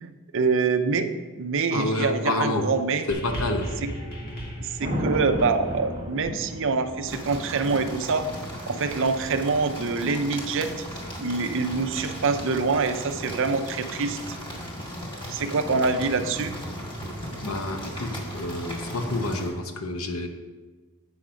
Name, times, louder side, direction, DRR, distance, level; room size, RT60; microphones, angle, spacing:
voice 1, 0.0-3.1 4.6-8.3 8.7-10.7 11.2-14.2 15.3-16.5, right 4 dB, 60° right, 8 dB, 0.6 m, -25 dB
voice 2, 1.7-2.7 3.1-3.8 17.4-20.3, left 2 dB, 70° left, 5 dB, 0.9 m, -28 dB
sound 1, 3.1-7.6 8.5-8.6, equal, 45° left, 1.4 m, -37 dB
Thunder, 4.8-12.9 15.6-15.9, equal, 30° right, 1.1 m, -36 dB
sound 2, 7.1-19.5, equal, 25° left, 2.1 m, -37 dB
8.5 x 5.9 x 5.0 m, 1.3 s
head